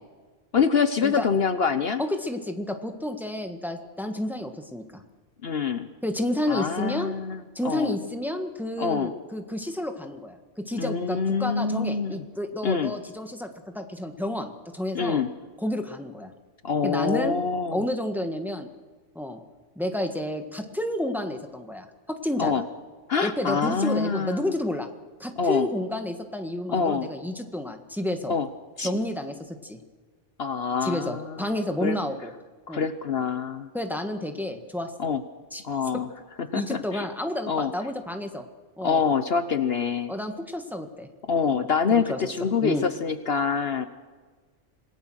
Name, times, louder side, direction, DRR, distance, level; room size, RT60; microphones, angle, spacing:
voice 1, 0.5-2.0 5.4-5.9 6.5-7.4 7.6-8.0 8.8-9.1 10.7-12.2 12.6-12.9 14.9-15.3 16.6-17.8 22.4-22.6 23.1-24.4 25.4-25.7 26.7-27.1 28.3-28.5 28.8-28.9 30.4-31.5 31.8-32.0 32.7-33.7 35.0-35.2 35.6-36.1 36.4-37.0 37.5-37.7 38.8-40.1 41.2-43.9, left 5 dB, 55° left, 10 dB, 1.1 m, -25 dB
voice 2, 2.0-5.0 6.0-7.1 7.5-15.2 15.6-16.3 16.8-17.3 17.7-18.7 19.1-19.4 19.7-22.6 23.2-24.9 25.2-28.3 28.8-29.8 30.8-32.3 32.7-32.9 33.7-34.9 35.5-35.6 36.5-38.4 38.8-39.0 40.1-41.1 41.5-42.3 42.6-42.8, left 1 dB, ahead, 5 dB, 1.6 m, -30 dB
27.0 x 18.0 x 6.4 m, 1.4 s
omnidirectional pair, 1.3 m